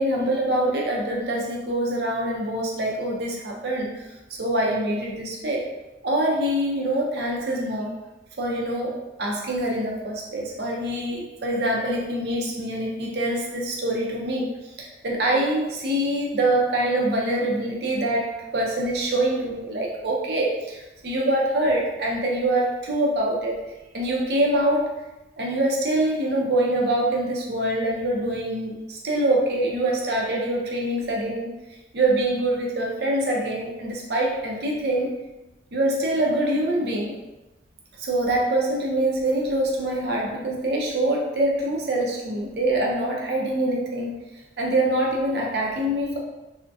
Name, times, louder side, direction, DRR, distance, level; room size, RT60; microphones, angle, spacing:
voice 1, 0.0-3.9 4.3-5.6 6.0-7.9 8.4-14.5 14.8-23.6 23.9-24.9 25.4-31.5 31.9-35.1 35.7-37.1 38.0-44.1 44.6-46.2, right 1 dB, 60° right, -1 dB, 0.5 m, -24 dB
3.4 x 2.1 x 2.6 m, 1.0 s
head